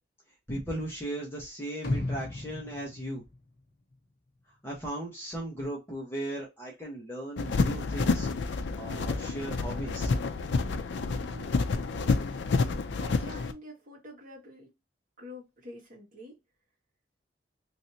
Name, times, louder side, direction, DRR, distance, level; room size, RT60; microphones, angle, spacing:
voice 1, 0.5-3.2 4.6-10.1, right 1 dB, 15° left, 0.9 m, -37 dB
sound 1, 1.8-4.0 4.4-4.5, left 2 dB, 55° left, 0.8 m, -35 dB
sound 2, 7.4-13.5, left 4 dB, 80° left, 0.4 m, -29 dB
voice 2, 11.1-11.5 13.0-14.7 15.2-16.4, left 1 dB, 45° right, 1.8 m, -47 dB
3.2 x 2.8 x 2.7 m
head